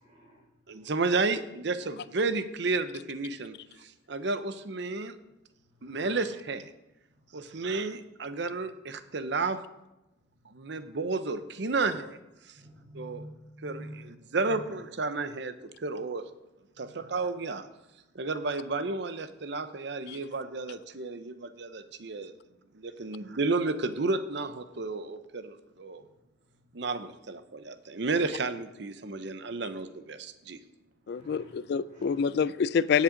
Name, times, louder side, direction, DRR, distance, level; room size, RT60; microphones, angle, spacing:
voice 1, 0.0-0.4 5.8-6.1 7.6-7.7 12.6-14.0 14.4-14.7 31.1-31.4 31.9-32.3, right 1 dB, 40° right, 3.8 m, -47 dB
voice 2, 0.7-5.2 5.8-6.7 7.3-9.6 10.4-12.2 12.4-12.6 12.9-13.2 13.6-16.3 16.8-17.7 18.1-22.3 22.7-26.0 26.7-30.6, right 3 dB, 65° right, 0.7 m, -32 dB
voice 3, 31.1-33.0, left 6 dB, 60° left, 0.3 m, -27 dB
17.0 x 7.3 x 3.9 m
head